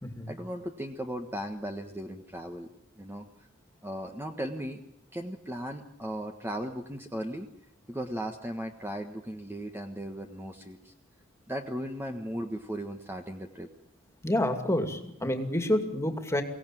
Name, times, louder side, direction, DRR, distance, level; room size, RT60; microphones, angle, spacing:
voice 1, 0.3-2.7 3.0-3.5 3.8-4.8 5.1-7.5 7.9-10.9 11.5-13.7, equal, 10° right, 4 dB, 1.4 m, -37 dB
voice 2, 14.2-16.4, left 1 dB, 15° left, 6 dB, 2.5 m, -28 dB
23.5 x 17.5 x 9.1 m, 0.79 s
head